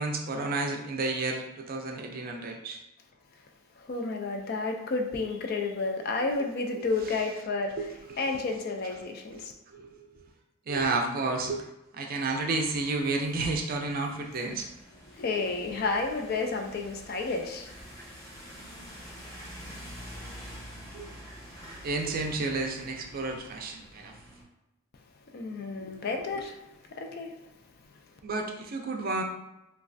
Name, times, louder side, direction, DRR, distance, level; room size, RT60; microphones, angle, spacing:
voice 1, 0.0-2.8 6.8-7.2 7.8-8.2 9.3-10.3 10.7-11.7 11.9-14.7 20.9-21.1 21.8-24.1 28.2-29.2, right 3 dB, 45° right, 3 dB, 0.4 m, -31 dB
voice 2, 3.8-7.7 8.2-9.5 15.1-17.7 25.3-26.6 27.0-27.3, left 3 dB, 50° left, 3 dB, 0.3 m, -31 dB
sound 1, 12.2-24.4, equal, 15° left, 0.7 m, -47 dB
3.1 x 2.3 x 2.5 m, 0.91 s
head